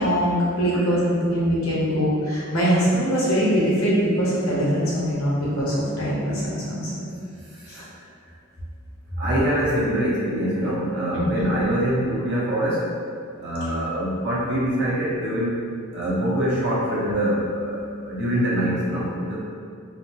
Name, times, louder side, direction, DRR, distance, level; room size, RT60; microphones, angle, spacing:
voice 1, 0.0-7.0 11.3-11.4, equal, 85° left, -7 dB, 1.1 m, -22 dB
voice 2, 0.7-1.0 7.7-7.8 9.2-12.8 13.4-15.5 15.9-19.4, equal, 55° right, -7 dB, 0.9 m, -24 dB
4.1 x 2.0 x 2.8 m, 2.3 s
head